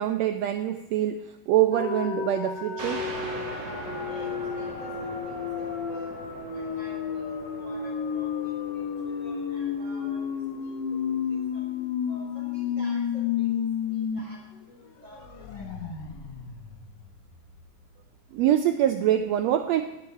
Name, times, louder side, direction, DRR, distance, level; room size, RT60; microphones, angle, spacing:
voice 1, 0.0-3.0 18.3-19.8, right 11 dB, 90° right, 8 dB, 1.5 m, -24 dB
sound 1, 1.7-14.2 14.5-14.6 15.0-17.7, left 7 dB, 65° left, 1.1 m, -32 dB
sound 2, 2.8-12.0, right 2 dB, 70° right, 3.5 m, -42 dB
voice 2, 4.0-6.1 6.5-10.2 10.5-11.6 12.1-14.4 14.7-15.7, equal, 35° right, -3 dB, 2.9 m, -50 dB
14.0 x 10.5 x 4.5 m, 1.0 s
omnidirectional pair, 3.6 m